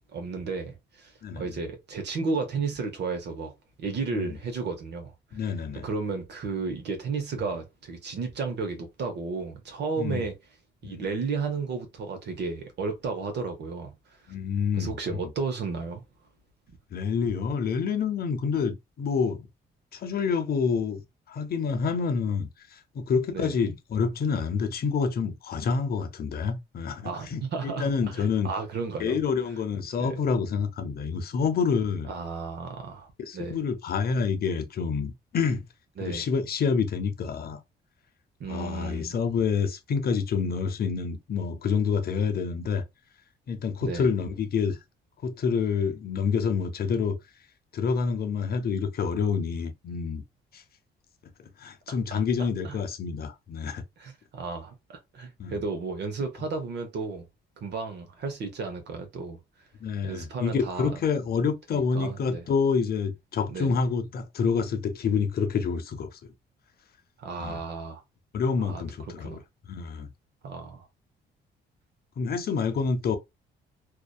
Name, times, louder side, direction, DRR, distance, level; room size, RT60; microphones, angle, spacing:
voice 1, 0.1-3.5 3.8-5.4 5.7-10.4 10.8-13.9 14.8-16.0 23.3-23.6 27.0-29.2 30.0-30.2 32.1-33.6 36.0-36.3 38.4-39.2 43.8-44.1 52.1-52.8 54.0-57.2 57.6-59.4 60.0-61.0 61.7-62.4 63.5-63.8 67.2-68.0 68.6-68.8 69.2-69.4 70.4-70.9, right 4 dB, 60° right, 0.7 m, -33 dB
voice 2, 5.3-5.9 10.0-10.2 10.8-11.1 14.3-15.0 16.9-19.5 19.9-21.0 21.3-28.5 29.0-32.1 33.2-35.6 36.0-37.6 38.5-42.8 43.5-44.8 45.2-47.2 47.7-50.2 50.5-50.6 51.6-53.8 55.4-55.6 59.8-66.2 67.4-67.6 68.3-69.4 69.7-70.1 72.2-73.2, left 5 dB, 50° left, 0.6 m, -28 dB
2.6 x 2.2 x 2.2 m
cardioid pair, 90°, 20 cm